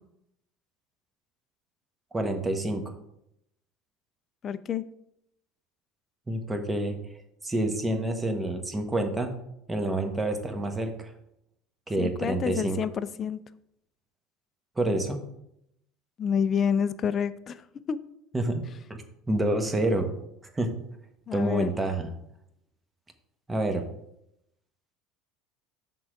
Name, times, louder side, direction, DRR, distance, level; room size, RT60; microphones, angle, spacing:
voice 1, 2.1-2.8 6.3-7.0 7.4-9.3 9.7-11.1 11.9-12.8 14.8-15.2 18.3-18.6 18.9-20.1 20.5-20.7 21.3-22.1 23.5-23.8, right 1 dB, 15° right, 6 dB, 1.1 m, -28 dB
voice 2, 4.4-4.8 12.0-13.4 16.2-17.6 17.9-18.0 21.3-21.7, left 7 dB, 40° left, 15 dB, 0.4 m, -28 dB
6.1 x 3.8 x 5.9 m, 0.79 s
hypercardioid pair, 70°, 0 cm